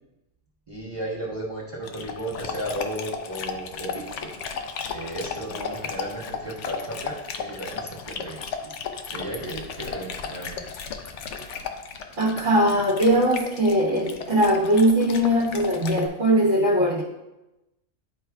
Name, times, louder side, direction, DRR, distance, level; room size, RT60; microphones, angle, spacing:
voice 1, 0.7-4.3 4.9-8.7 9.1-10.6, right 1 dB, 30° right, -5 dB, 1.1 m, -34 dB
Dog, 1.8-16.1, left 6 dB, 75° left, 0.9 m, -35 dB
voice 2, 12.2-17.0, equal, 60° right, -6 dB, 1.3 m, -20 dB
11.0 x 4.6 x 2.3 m, 0.98 s
omnidirectional pair, 1.3 m